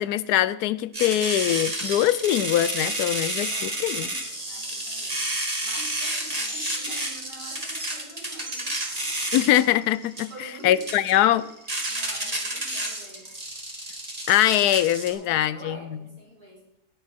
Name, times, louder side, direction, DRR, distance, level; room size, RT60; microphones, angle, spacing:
voice 1, 0.0-4.1 9.3-11.4 14.3-16.0, left 12 dB, 85° left, 16 dB, 1.1 m, -22 dB
sound 1, 0.9-15.1, right 1 dB, 25° right, 2.2 m, -30 dB
voice 2, 3.4-8.8 10.3-11.4 11.9-13.3 15.1-16.8, right 1 dB, 75° right, -3 dB, 4.9 m, -46 dB
18.0 x 6.6 x 4.5 m, 0.81 s
omnidirectional pair, 1.6 m